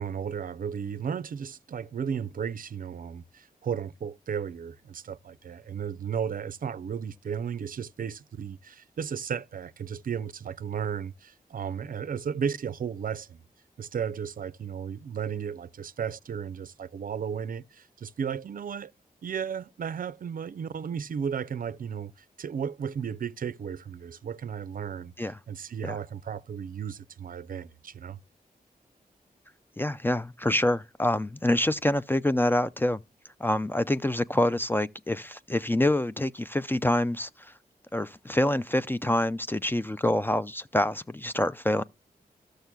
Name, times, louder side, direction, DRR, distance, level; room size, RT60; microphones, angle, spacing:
voice 1, 0.0-13.4 13.8-18.9 19.2-28.2, right 7 dB, 60° right, 0.4 m, -34 dB
voice 2, 29.8-33.0 33.4-37.5 37.9-41.8, left 1 dB, 15° left, 0.3 m, -26 dB
14.0 x 6.5 x 2.2 m
wide cardioid pair, 85°, 16 cm